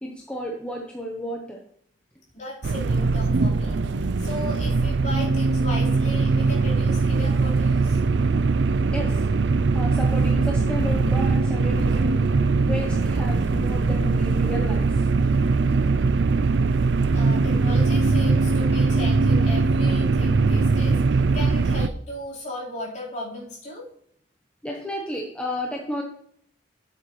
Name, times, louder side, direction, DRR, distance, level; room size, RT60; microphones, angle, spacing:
voice 1, 0.0-1.6 8.9-9.2 9.7-12.2 12.6-15.1 24.6-26.0, equal, 5° left, -2 dB, 1.0 m, -32 dB
voice 2, 2.3-8.0 17.1-23.8, left 1 dB, 40° left, -6 dB, 4.2 m, -36 dB
sound 1, 2.6-21.9, right 3 dB, 60° right, 0.4 m, -21 dB
12.5 x 7.5 x 3.2 m, 0.65 s
head